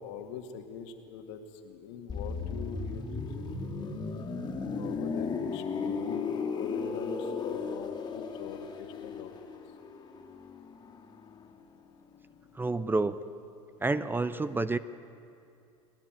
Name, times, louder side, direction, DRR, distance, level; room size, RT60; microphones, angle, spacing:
voice 1, 0.0-3.9 4.8-6.3 6.6-9.3, left 6 dB, 70° left, 6 dB, 2.1 m, -43 dB
sound 1, 2.1-11.8 12.0-12.2, left 5 dB, 30° left, 2.6 m, -35 dB
voice 2, 12.5-13.2 13.8-14.8, right 3 dB, 15° right, 14 dB, 0.7 m, -29 dB
30.0 x 11.5 x 9.2 m, 2.6 s
hypercardioid pair, 90°, 15 cm